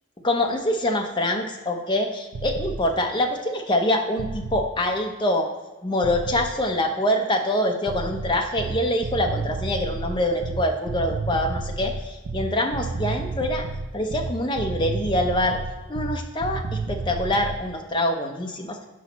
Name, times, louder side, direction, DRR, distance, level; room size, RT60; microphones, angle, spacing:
voice 1, 0.2-5.5 5.8-13.6 13.9-15.6 15.9-16.6 16.9-18.8, left 1 dB, 20° left, 2 dB, 0.7 m, -25 dB
sound 1, 2.3-2.8 4.2-4.7 6.0-6.5 7.9-17.6, right 3 dB, 65° right, 0.5 m, -31 dB
6.2 x 5.5 x 4.1 m, 1.2 s
head